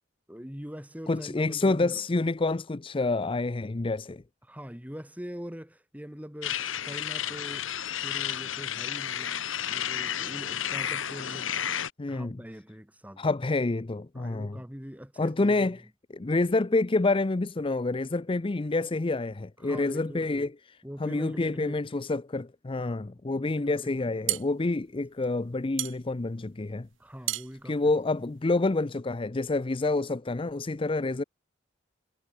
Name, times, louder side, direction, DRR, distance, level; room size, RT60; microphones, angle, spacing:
voice 1, 0.3-2.0 4.4-11.6 12.1-13.3 14.1-15.8 19.6-20.5 20.8-21.8 22.8-23.0 23.3-24.1 27.0-27.8, equal, 10° right, 3.0 m, -43 dB
voice 2, 1.1-4.2 12.0-12.4 13.2-14.6 15.2-15.8 16.1-20.5 21.0-26.9 27.6-31.2, left 2 dB, 25° left, 0.5 m, -28 dB
sound 1, 6.4-11.9, left 10 dB, 80° left, 1.2 m, -32 dB
sound 2, 23.9-28.8, right 16 dB, 70° right, 1.2 m, -36 dB
head